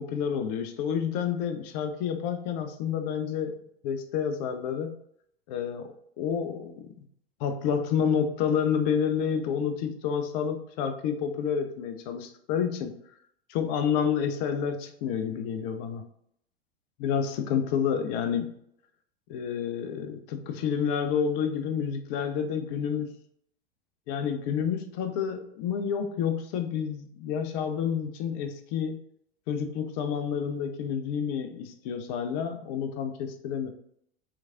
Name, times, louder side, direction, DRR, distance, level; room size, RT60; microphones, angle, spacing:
voice 1, 0.0-3.5 3.8-4.9 5.5-6.9 7.4-12.9 13.5-16.0 17.0-18.5 19.3-23.1 24.1-29.0 29.5-33.7, left 7 dB, 45° left, 7 dB, 0.5 m, -29 dB
3.3 x 3.0 x 2.5 m, 0.70 s
figure-of-eight pair, 90°, 31 cm